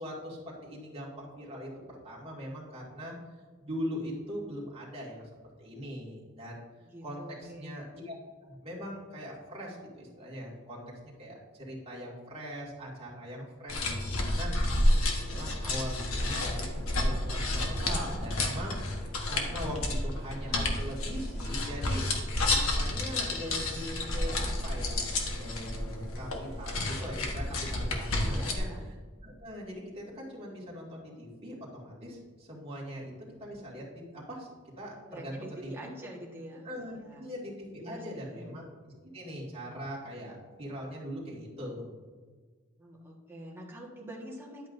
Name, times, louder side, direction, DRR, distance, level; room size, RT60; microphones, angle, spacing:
voice 1, 0.0-3.1 3.6-5.3 5.6-6.6 7.0-8.1 8.5-14.5 14.8-16.6 17.0-18.8 19.3-22.0 22.5-29.0 29.2-33.1 33.4-34.5 34.8-35.9 36.6-38.6 39.1-41.9, equal, 30° right, -5 dB, 2.2 m, -41 dB
voice 2, 6.8-7.8 28.3-28.8 35.1-37.3 37.8-38.5 42.8-44.7, right 1 dB, 10° right, -3 dB, 1.5 m, -46 dB
sound 1, 13.7-28.6, left 1 dB, 70° left, 1.3 m, -30 dB
10.5 x 8.2 x 2.6 m, 1.5 s
head